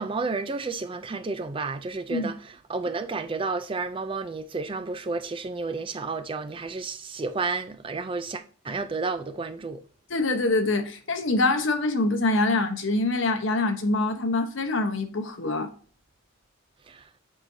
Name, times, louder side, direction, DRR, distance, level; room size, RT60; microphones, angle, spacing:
voice 1, 0.0-9.8 16.9-17.0, right 4 dB, 25° right, 0.3 m, -31 dB
voice 2, 10.1-15.7, left 2 dB, 60° left, 1.0 m, -25 dB
7.8 x 4.8 x 2.7 m
head